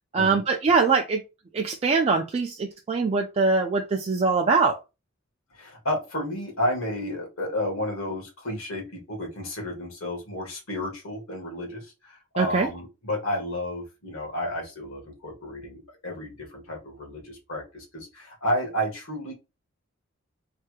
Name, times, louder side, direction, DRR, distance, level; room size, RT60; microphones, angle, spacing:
voice 1, 0.1-1.2 1.5-4.8 12.4-12.7, right 4 dB, 30° right, 2 dB, 0.3 m, -23 dB
voice 2, 5.5-19.3, left 1 dB, 75° left, 1 dB, 1.5 m, -31 dB
3.3 x 3.0 x 2.2 m, 0.27 s
head